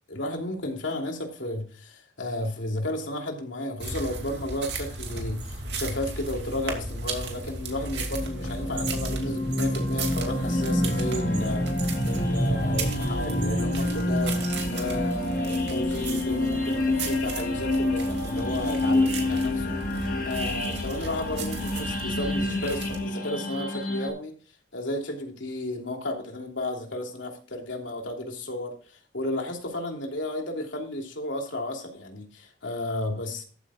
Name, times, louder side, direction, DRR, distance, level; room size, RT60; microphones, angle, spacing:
voice 1, 0.1-11.7 12.0-14.4 14.7-19.8 20.2-24.3 24.7-33.4, left 1 dB, 80° left, 2 dB, 3.0 m, -33 dB
sound 1, 3.8-23.0, right 2 dB, 60° right, 2.5 m, -35 dB
sound 2, 7.4-24.1, left 1 dB, 45° left, 1.8 m, -28 dB
14.0 x 8.5 x 2.4 m, 0.41 s
head